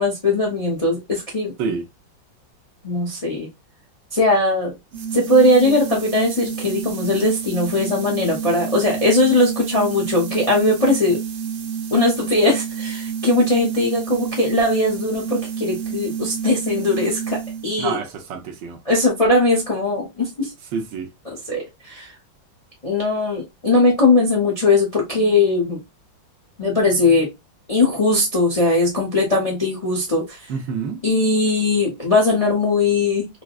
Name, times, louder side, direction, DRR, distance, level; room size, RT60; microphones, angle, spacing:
voice 1, 0.0-1.7 2.8-3.5 4.1-4.7 5.1-11.2 11.9-18.0 18.8-20.5 21.3-22.1 22.8-25.8 26.6-27.3 27.7-30.4 31.0-33.3, left 2 dB, 35° left, 0.6 m, -19 dB
sound 1, 4.9-17.8, right 7 dB, 90° right, 0.6 m, -29 dB
voice 2, 17.8-18.8 20.7-21.1 30.5-31.0, right 6 dB, 70° right, 1.3 m, -27 dB
4.7 x 2.2 x 2.3 m
omnidirectional pair, 2.1 m